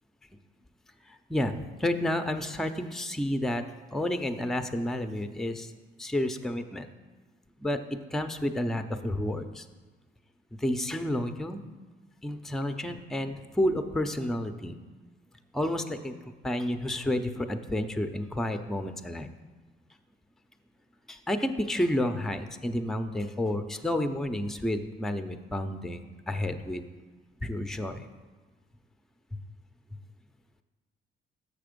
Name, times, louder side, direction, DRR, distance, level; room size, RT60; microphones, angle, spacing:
voice 1, 1.1-3.6 3.9-5.7 6.0-6.9 7.6-7.8 8.1-9.7 10.6-11.6 12.2-14.8 15.5-16.2 16.4-19.3 21.1-26.8 27.4-28.1, left 1 dB, ahead, 8 dB, 0.4 m, -30 dB
6.8 x 5.9 x 5.1 m, 1.3 s
cardioid pair, 90°, 20 cm